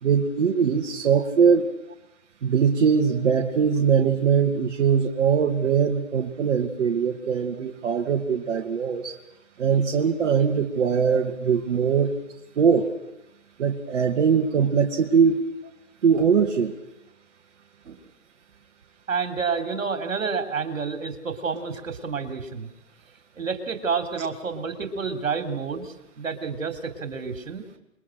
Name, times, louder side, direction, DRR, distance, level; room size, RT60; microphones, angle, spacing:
voice 1, 0.0-1.7 2.4-9.1 9.6-12.1 12.6-12.9 13.6-15.4 16.0-16.7, right 6 dB, 60° right, 0 dB, 2.5 m, -21 dB
voice 2, 19.1-22.7 23.4-27.6, right 5 dB, 80° right, 7 dB, 3.7 m, -29 dB
29.0 x 22.0 x 6.4 m, 0.90 s
hypercardioid pair, 150°, 39 cm